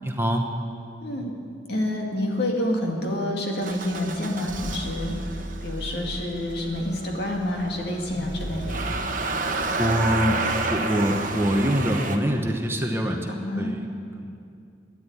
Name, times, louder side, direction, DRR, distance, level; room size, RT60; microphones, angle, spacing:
voice 1, 0.0-0.5 8.1-8.3 9.8-10.4 10.7-13.9 14.1-14.4, equal, 15° right, 3 dB, 0.9 m, -25 dB
voice 2, 1.0-1.4 1.7-5.1 5.6-8.8 13.4-13.7, left 1 dB, 60° left, 0 dB, 2.2 m, -28 dB
Motor vehicle (road) / Engine starting, 3.6-12.2, right 2 dB, 45° right, 1.1 m, -30 dB
13.5 x 10.0 x 9.4 m, 2.4 s
head